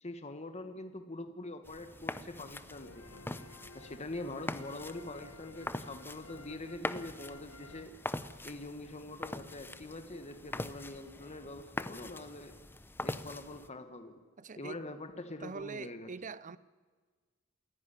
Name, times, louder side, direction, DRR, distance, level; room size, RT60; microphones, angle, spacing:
voice 1, 0.0-3.2 3.7-7.9 8.4-12.6 13.0-14.2 14.6-16.1, left 2 dB, 30° left, 1.3 m, -44 dB
sound 1, 1.6-13.7, left 2 dB, 10° left, 0.7 m, -43 dB
sound 2, 2.7-8.6, left 3 dB, 85° left, 1.3 m, -55 dB
voice 2, 14.4-14.9 15.4-16.6, right 4 dB, 40° right, 0.6 m, -43 dB
28.0 x 11.0 x 9.9 m
head